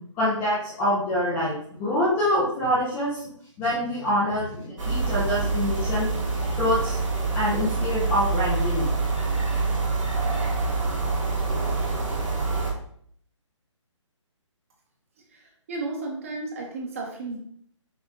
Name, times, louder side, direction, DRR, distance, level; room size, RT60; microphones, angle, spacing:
voice 1, 0.1-3.2 3.6-6.1 6.6-7.0 7.3-9.0, left 1 dB, 5° left, -9 dB, 0.4 m, -25 dB
sound 1, 4.8-12.7, right 3 dB, 80° right, 2.0 m, -26 dB
voice 2, 15.7-17.4, right 3 dB, 25° right, 0 dB, 0.9 m, -33 dB
6.1 x 2.2 x 3.6 m, 0.62 s
hypercardioid pair, 165°, 16 cm